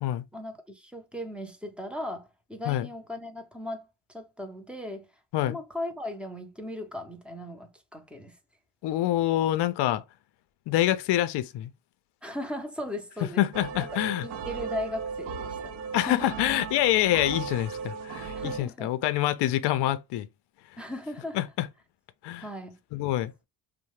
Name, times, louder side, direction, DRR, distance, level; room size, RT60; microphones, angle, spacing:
voice 1, 0.3-5.1 5.4-8.4 12.2-13.4 14.0-16.5 17.3-17.4 18.3-18.9 20.8-21.4 22.4-22.8, left 1 dB, ahead, 0.5 m, -38 dB
voice 2, 8.8-10.0 10.7-11.7 13.4-14.3 15.9-20.3 21.3-21.7 22.2-22.5 22.9-23.3, left 13 dB, 55° left, 0.5 m, -26 dB
sound 1, 13.5-18.6, right 5 dB, 65° right, 0.8 m, -36 dB
2.7 x 2.1 x 3.0 m
cardioid pair, 100°, 50 cm